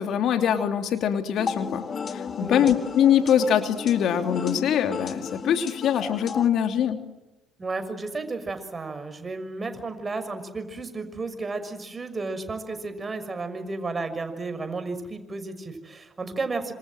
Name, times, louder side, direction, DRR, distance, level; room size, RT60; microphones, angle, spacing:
voice 1, 0.0-1.8 2.1-7.0, left 9 dB, 60° left, 7 dB, 2.9 m, -23 dB
sound 1, 1.4-6.5, left 6 dB, 40° left, 2.1 m, -34 dB
voice 2, 7.6-16.7, right 3 dB, 30° right, 8 dB, 6.1 m, -33 dB
28.0 x 27.0 x 7.7 m, 1.1 s
hypercardioid pair, 60°, 0 cm